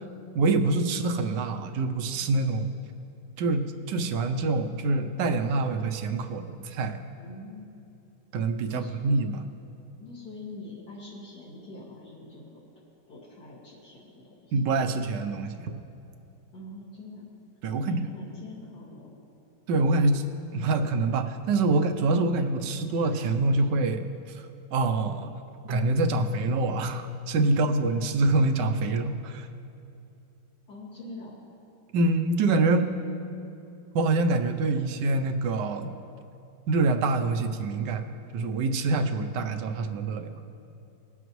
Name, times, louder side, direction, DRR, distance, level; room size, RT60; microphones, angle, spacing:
voice 1, 0.3-2.7 3.4-7.0 8.3-9.4 14.5-15.7 17.6-18.0 19.7-20.2 20.5-24.0 24.4-24.5 24.7-25.3 25.7-29.5 31.9-32.9 33.9-35.9 36.7-40.3, right 3 dB, 75° right, 7 dB, 1.3 m, -25 dB
voice 2, 7.2-7.7 8.7-9.0 10.0-12.6 13.1-14.6 16.5-17.2 17.7-19.1 30.7-31.4, left 2 dB, 65° left, -9 dB, 2.7 m, -44 dB
Keyboard (musical), 25.7-28.6, left 5 dB, 55° right, 1.2 m, -34 dB
20.5 x 8.0 x 3.1 m, 2.7 s
omnidirectional pair, 2.0 m